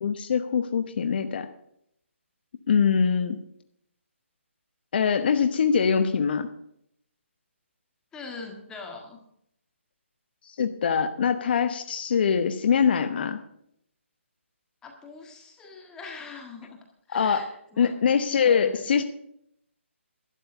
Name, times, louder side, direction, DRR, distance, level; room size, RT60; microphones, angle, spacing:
voice 1, 0.0-1.5 2.7-3.4 4.9-6.5 10.5-13.4 17.1-17.4 17.8-19.0, left 6 dB, 50° left, 9 dB, 1.0 m, -23 dB
voice 2, 8.1-9.2 14.8-16.8 17.1-17.9 18.4-18.9, left 4 dB, 10° left, 1 dB, 1.6 m, -42 dB
12.0 x 9.2 x 6.8 m, 0.72 s
figure-of-eight pair, 150°, 7 cm